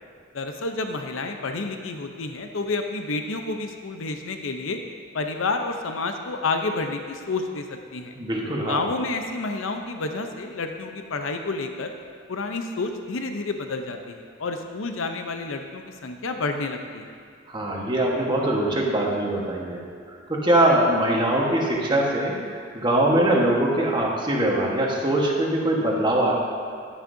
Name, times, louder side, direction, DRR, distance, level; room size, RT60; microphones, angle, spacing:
voice 1, 0.3-4.8 5.1-8.1 8.7-11.9 12.3-17.1, left 3 dB, 85° left, 5 dB, 0.7 m, -29 dB
voice 2, 8.2-8.9 17.5-19.8 20.3-22.3 22.7-26.4, right 1 dB, 25° right, -2 dB, 1.3 m, -22 dB
11.0 x 9.8 x 2.7 m, 2.2 s
head